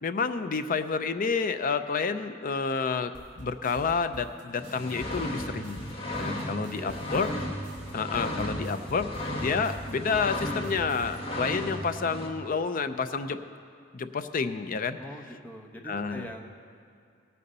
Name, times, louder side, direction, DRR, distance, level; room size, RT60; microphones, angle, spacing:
voice 1, 0.0-3.1 3.4-7.3 7.9-9.1 9.3-13.4 13.9-15.0 15.9-16.3, left 5 dB, 45° left, 10 dB, 0.5 m, -29 dB
sound 1, 3.1-11.1, right 1 dB, 60° right, 3.4 m, -46 dB
sound 2, 4.6-12.3, left 1 dB, 30° left, 1.5 m, -35 dB
voice 2, 6.4-7.1 15.0-16.5, equal, 10° left, 3 dB, 0.9 m, -43 dB
18.0 x 6.8 x 5.4 m, 2.4 s
head